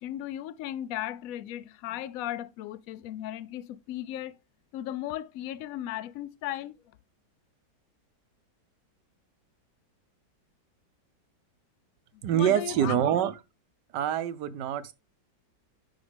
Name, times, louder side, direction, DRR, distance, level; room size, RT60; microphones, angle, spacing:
voice 1, 0.0-4.4 4.7-6.7 12.1-13.0, left 12 dB, 70° left, 0.8 m, -36 dB
voice 2, 12.2-13.3 13.9-14.9, right 10 dB, 75° right, 1.3 m, -26 dB
7.9 x 5.7 x 3.3 m
omnidirectional pair, 1.9 m